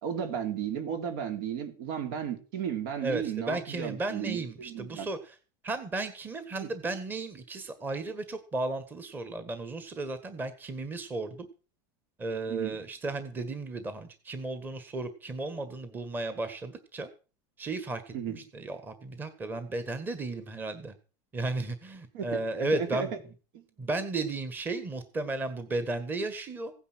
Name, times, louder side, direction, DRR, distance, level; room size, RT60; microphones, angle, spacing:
voice 1, 0.0-5.1 6.6-6.7 12.5-12.8 18.1-18.4 22.1-23.1 23.5-23.6, right 8 dB, 65° right, 3.9 m, -34 dB
voice 2, 3.0-5.4 5.6-11.5 12.2-17.1 17.6-20.9 21.3-23.1 23.8-26.7, right 2 dB, 15° right, 1.6 m, -34 dB
16.5 x 9.9 x 6.3 m
supercardioid pair, 150°, 12 cm